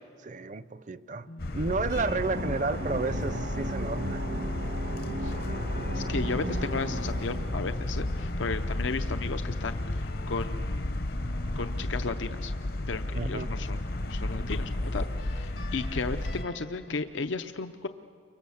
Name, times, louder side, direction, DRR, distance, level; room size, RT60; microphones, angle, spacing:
voice 1, 0.2-1.3 1.5-4.2 13.1-13.5, right 3 dB, 40° right, 15 dB, 0.5 m, -32 dB
sound 1, 1.4-16.4, left 1 dB, 55° left, 0.8 m, -33 dB
sound 2, 1.7-9.3, right 1 dB, 80° right, 1.5 m, -37 dB
voice 2, 5.9-10.9 11.6-12.5 12.9-17.9, left 4 dB, 85° left, 8 dB, 0.7 m, -34 dB
sound 3, 7.3-13.8 14.2-17.0, left 1 dB, 70° left, 1.4 m, -50 dB
30.0 x 24.5 x 7.2 m, 2.4 s
head